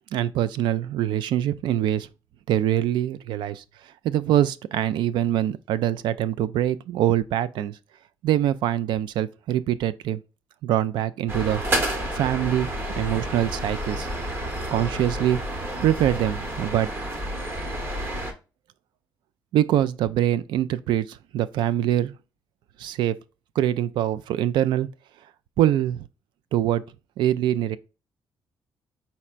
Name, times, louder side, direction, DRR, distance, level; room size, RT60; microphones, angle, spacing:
voice 1, 0.1-2.1 2.5-3.6 4.0-7.8 8.2-10.2 10.6-11.6 12.1-12.7 13.0-14.1 14.7-15.4 15.8-16.9 19.5-22.1 22.8-23.2 23.6-24.9 25.6-26.0 26.5-26.8 27.2-27.8, right 12 dB, 80° right, 0.3 m, -24 dB
sound 1, 11.3-18.3, right 1 dB, 30° right, 0.9 m, -30 dB
4.4 x 4.1 x 2.4 m
cardioid pair, 135°, 8 cm